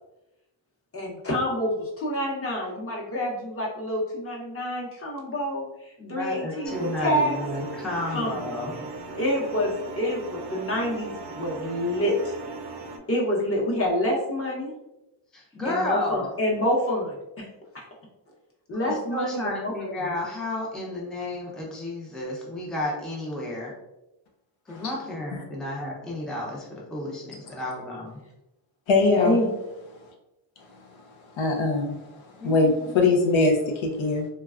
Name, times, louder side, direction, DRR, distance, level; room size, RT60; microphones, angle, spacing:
voice 1, 0.9-7.4 8.1-8.8 9.1-12.4 13.1-14.7 15.6-17.5 18.7-19.7 29.2-29.5, left 1 dB, 30° left, -3 dB, 0.8 m, -27 dB
voice 2, 6.0-8.7 15.3-16.3 18.9-23.7 24.7-28.2 32.4-32.9, left 1 dB, ahead, -3 dB, 0.5 m, -32 dB
sound 1, 6.7-13.0, right 3 dB, 60° right, 0.5 m, -37 dB
voice 3, 28.9-29.4 30.8-30.9 31.3-34.3, left 3 dB, 80° left, 1 dB, 0.7 m, -23 dB
3.1 x 2.2 x 2.4 m, 0.94 s
cardioid pair, 95°, 47 cm